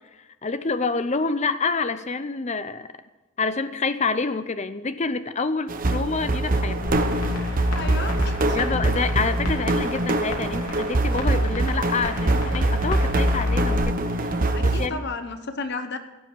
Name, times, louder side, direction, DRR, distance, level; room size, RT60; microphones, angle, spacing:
voice 1, 0.4-2.9 3.4-6.9 8.5-15.0, left 4 dB, 35° left, 12 dB, 0.6 m, -27 dB
sound 1, 5.7-14.9, right 2 dB, 40° right, 0.9 m, -24 dB
rain canvas, 6.9-13.8, left 2 dB, 85° left, 2.8 m, -30 dB
voice 2, 7.7-8.6 14.4-16.0, left 3 dB, 50° left, 8 dB, 1.0 m, -33 dB
17.5 x 7.1 x 7.4 m, 1.1 s
head